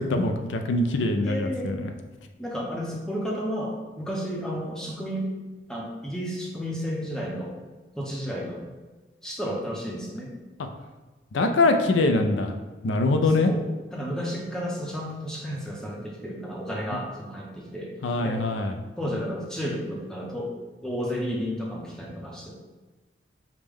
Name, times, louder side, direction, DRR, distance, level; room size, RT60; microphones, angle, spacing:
voice 1, 0.0-1.9 10.6-10.7 11.3-12.5 12.8-13.5 18.0-18.8, left 2 dB, 75° left, 6 dB, 0.4 m, -23 dB
voice 2, 1.2-1.8 2.4-5.3 5.7-7.5 8.0-8.6 9.2-10.3 13.4-13.6 13.9-17.9 18.2-18.4 19.0-20.5 20.8-22.5, equal, 5° left, -3 dB, 0.6 m, -32 dB
5.0 x 2.1 x 3.5 m, 1.3 s
head